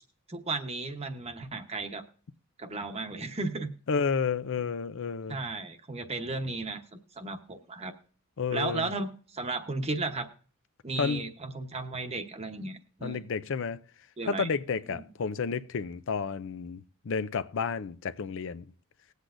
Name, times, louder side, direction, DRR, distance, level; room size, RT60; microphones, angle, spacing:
voice 1, 0.3-2.0 2.6-3.7 5.3-6.8 7.2-7.9 8.5-10.3 10.8-13.2 14.2-14.5 14.9-15.1, right 3 dB, 30° right, 1.0 m, -34 dB
voice 2, 3.9-5.4 8.4-8.9 11.0-11.3 13.0-13.8 14.3-18.6, left 5 dB, 60° left, 0.5 m, -31 dB
20.0 x 8.1 x 2.5 m
head